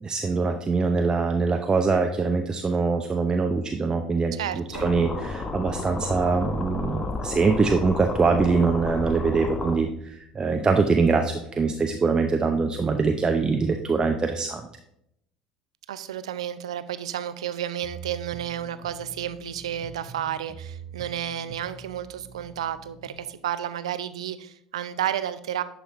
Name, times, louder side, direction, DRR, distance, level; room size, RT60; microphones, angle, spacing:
voice 1, 0.0-14.6, right 4 dB, 25° right, 5 dB, 0.7 m, -23 dB
voice 2, 4.3-4.9 15.9-25.6, right 10 dB, 80° right, 13 dB, 0.4 m, -31 dB
sound 1, 4.7-9.8, left 2 dB, 25° left, 1.0 m, -32 dB
sound 2, 17.8-23.1, right 5 dB, 45° right, 1.0 m, -44 dB
11.0 x 5.1 x 3.1 m, 0.77 s
figure-of-eight pair, 65°, 3 cm